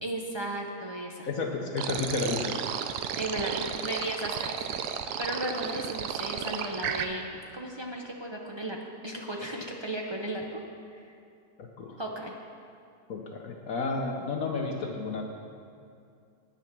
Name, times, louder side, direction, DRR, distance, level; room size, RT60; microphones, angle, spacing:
voice 1, 0.0-1.3 3.1-4.6 4.9-10.6 10.9-11.1 12.0-12.3, right 1 dB, 35° right, 0 dB, 0.4 m, -35 dB
voice 2, 1.3-2.6 11.8-12.0 13.1-15.2, left 3 dB, 60° left, 2 dB, 1.2 m, -31 dB
sound 1, 1.8-7.1, right 8 dB, 80° right, 1.2 m, -33 dB
9.6 x 9.1 x 5.9 m, 2.4 s
omnidirectional pair, 1.7 m